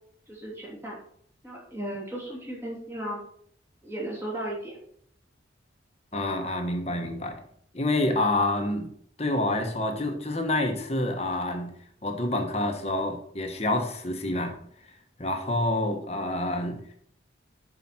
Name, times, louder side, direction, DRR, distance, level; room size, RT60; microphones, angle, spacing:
voice 1, 0.3-1.0 1.4-3.2 3.8-4.7, right 1 dB, 15° right, -5 dB, 2.9 m, -35 dB
voice 2, 6.1-7.3 7.7-8.9 9.2-11.8 12.0-14.6 15.2-16.9, left 1 dB, 35° left, 4 dB, 1.2 m, -27 dB
11.5 x 5.0 x 4.3 m, 0.63 s
head